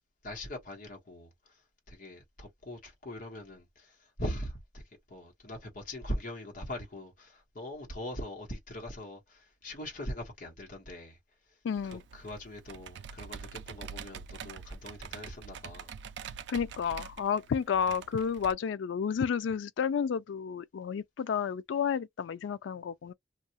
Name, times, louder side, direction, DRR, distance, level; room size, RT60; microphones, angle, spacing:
voice 1, 0.2-1.6 1.9-11.2 11.5-11.6 11.8-15.9, left 1 dB, 50° left, 1.1 m, -41 dB
voice 2, 11.6-12.0 16.5-23.1, left 7 dB, 80° left, 0.3 m, -31 dB
Computer keyboard, 11.8-18.5, right 7 dB, 65° right, 0.3 m, -45 dB
2.7 x 2.3 x 2.8 m
head